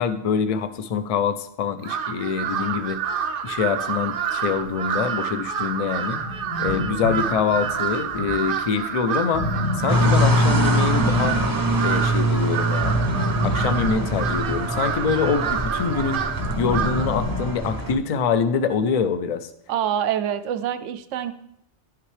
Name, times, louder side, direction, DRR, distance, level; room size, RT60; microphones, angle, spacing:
voice 1, 0.0-3.0 3.4-6.2 6.6-9.4 9.8-11.4 11.8-12.9 13.4-16.2 16.6-19.5, left 6 dB, 50° left, 11 dB, 0.4 m, -25 dB
Crow, 1.8-17.2, right 8 dB, 60° right, 0.6 m, -28 dB
sound 1, 6.2-8.6 9.3-11.9 12.8-14.8 16.3-18.0, left 1 dB, 70° left, 2.7 m, -29 dB
sound 2, 9.9-17.9, right 1 dB, 20° right, 0.6 m, -24 dB
voice 2, 19.7-21.3, right 10 dB, 85° right, 11 dB, 0.9 m, -25 dB
10.5 x 5.9 x 3.3 m, 0.76 s
omnidirectional pair, 1.2 m